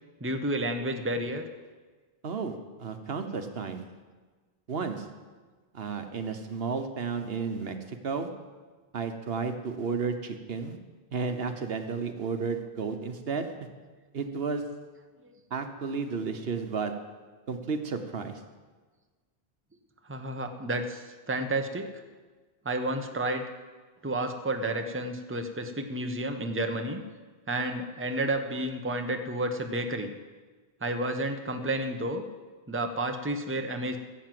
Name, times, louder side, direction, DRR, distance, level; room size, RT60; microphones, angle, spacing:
voice 1, 0.2-1.4 15.2-15.3 20.1-21.9 22.6-23.4 24.0-27.0 27.5-30.1 30.8-32.2 32.7-34.0, right 1 dB, 15° right, 5 dB, 0.9 m, -31 dB
voice 2, 2.2-3.8 4.7-5.0 5.7-8.3 8.9-10.8 11.1-13.5 14.1-14.6 15.5-16.9 17.5-18.3, right 5 dB, 70° right, 7 dB, 1.3 m, -32 dB
15.5 x 7.6 x 7.6 m, 1.4 s
omnidirectional pair, 1.0 m